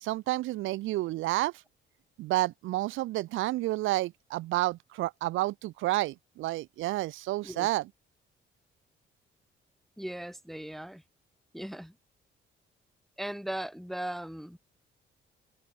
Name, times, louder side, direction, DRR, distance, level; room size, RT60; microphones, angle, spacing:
voice 1, 0.0-1.5 2.2-7.9, right 17 dB, 85° right, 0.6 m, -30 dB
voice 2, 10.0-11.0 11.5-11.9 13.2-14.6, right 1 dB, ahead, 0.4 m, -38 dB
cardioid pair, 90°, 20 cm